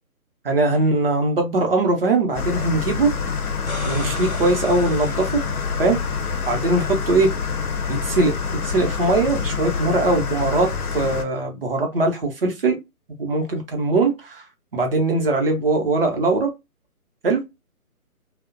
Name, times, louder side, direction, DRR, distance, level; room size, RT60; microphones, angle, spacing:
voice 1, 0.4-3.1 3.8-5.4 5.8-6.0 6.5-7.3 7.9-8.3 8.6-10.7 10.9-12.8 13.2-14.5 14.7-16.5 17.2-17.4, right 2 dB, 40° right, 0.6 m, -21 dB
sound 1, 2.3-11.2, left 5 dB, 75° left, 0.7 m, -26 dB
sound 2, 3.5-6.3 9.1-9.2, left 1 dB, 30° left, 0.4 m, -37 dB
2.4 x 2.1 x 2.4 m
figure-of-eight pair, 150°, 44 cm